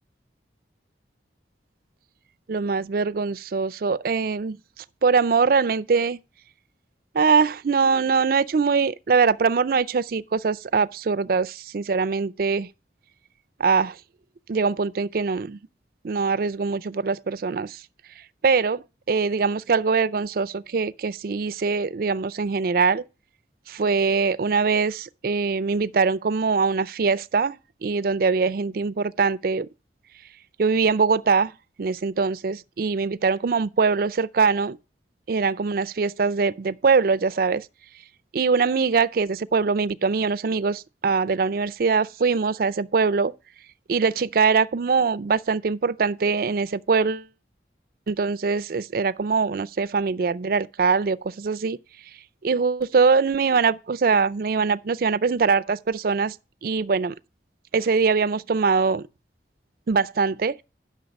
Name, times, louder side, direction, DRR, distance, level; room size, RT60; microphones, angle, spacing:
voice 1, 2.5-4.6 5.0-6.2 7.1-12.7 13.6-14.0 14.5-15.6 16.0-17.8 18.4-23.0 23.7-29.7 30.6-31.5 31.8-34.8 35.3-37.7 38.3-43.3 43.9-47.3 48.1-51.8 52.4-56.4 56.6-57.1 57.7-59.0 59.9-60.5, right 5 dB, 55° right, 0.4 m, -22 dB
9.2 x 6.3 x 5.2 m
head